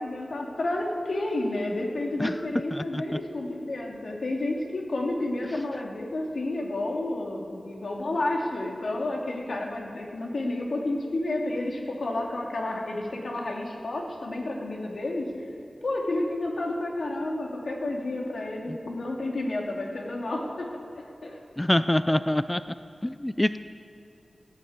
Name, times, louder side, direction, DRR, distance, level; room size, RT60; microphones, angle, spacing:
voice 1, 0.0-15.5 15.8-21.4, left 2 dB, 75° left, 0 dB, 2.6 m, -31 dB
voice 2, 2.7-3.0 18.7-18.8 21.6-22.6 23.0-23.6, left 1 dB, 15° left, 12 dB, 0.4 m, -25 dB
16.5 x 9.4 x 8.8 m, 2.8 s
wide cardioid pair, 75°, 0 cm